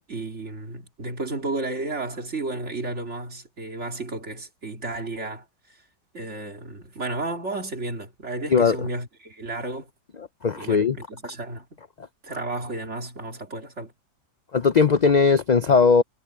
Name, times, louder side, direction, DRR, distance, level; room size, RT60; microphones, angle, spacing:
voice 1, 0.1-5.8 6.1-9.9 10.5-11.7 12.2-13.9, right 2 dB, 45° right, 3.1 m, -33 dB
voice 2, 10.4-11.0 14.5-16.0, left 5 dB, 65° left, 0.4 m, -18 dB
omnidirectional pair, 1.6 m